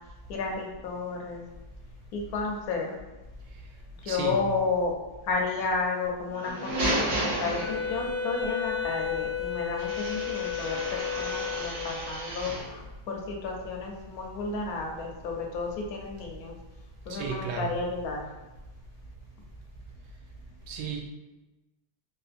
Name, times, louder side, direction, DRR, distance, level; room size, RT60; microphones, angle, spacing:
voice 1, 0.3-1.4 2.1-3.0 4.0-4.9 5.2-10.8 11.2-16.5 17.1-18.2, left 4 dB, 75° left, 0 dB, 1.0 m, -32 dB
voice 2, 4.1-4.4 17.1-17.7 20.7-21.0, right 6 dB, 80° right, 2 dB, 1.1 m, -33 dB
sound 1, 6.3-8.2 9.8-12.8, right 1 dB, 65° right, 1.3 m, -32 dB
Wind instrument woodwind instrument, 7.6-12.1, left 7 dB, 10° left, 1.3 m, -32 dB
3.5 x 2.5 x 2.4 m, 1.1 s
omnidirectional pair, 1.7 m